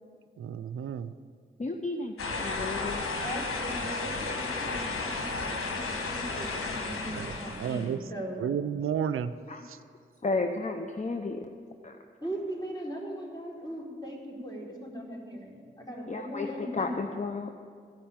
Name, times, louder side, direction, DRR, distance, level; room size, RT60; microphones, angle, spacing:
voice 1, 0.4-1.1 7.1-7.3 7.6-8.0 8.4-9.3, right 8 dB, 80° right, 13 dB, 0.4 m, -31 dB
voice 2, 1.6-3.0 9.5-9.7 10.2-11.5 11.8-12.0 16.1-17.6, left 3 dB, 35° left, 5 dB, 0.8 m, -33 dB
sound 1, 2.2-7.9, left 3 dB, 90° left, 1.3 m, -33 dB
voice 3, 3.2-8.4 12.2-16.9, equal, 20° left, -3 dB, 4.1 m, -39 dB
15.0 x 5.6 x 8.8 m, 2.2 s
cardioid pair, 40°, 21 cm